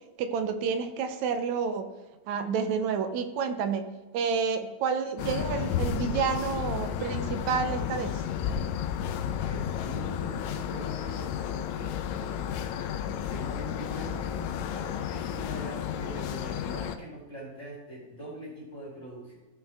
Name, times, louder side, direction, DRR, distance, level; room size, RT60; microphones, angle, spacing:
voice 1, 0.2-1.9 2.3-3.9 4.1-8.2, right 6 dB, 75° right, 7 dB, 1.9 m, -29 dB
sound 1, 5.2-17.0, left 8 dB, 80° left, 1.8 m, -32 dB
voice 2, 9.4-12.6 13.0-19.4, right 1 dB, 25° left, -5 dB, 2.3 m, -43 dB
15.0 x 5.5 x 3.4 m, 1.2 s
omnidirectional pair, 3.7 m